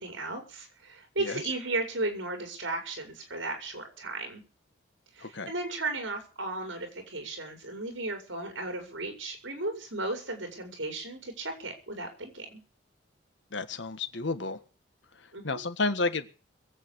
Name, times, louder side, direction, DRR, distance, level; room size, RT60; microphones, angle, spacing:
voice 1, 0.0-4.4 5.1-12.6 15.3-15.6, right 2 dB, 75° right, 5 dB, 6.0 m, -35 dB
voice 2, 5.2-5.5 13.5-14.6 15.1-16.3, left 3 dB, 70° left, 10 dB, 1.5 m, -31 dB
21.5 x 8.6 x 6.8 m, 0.37 s
head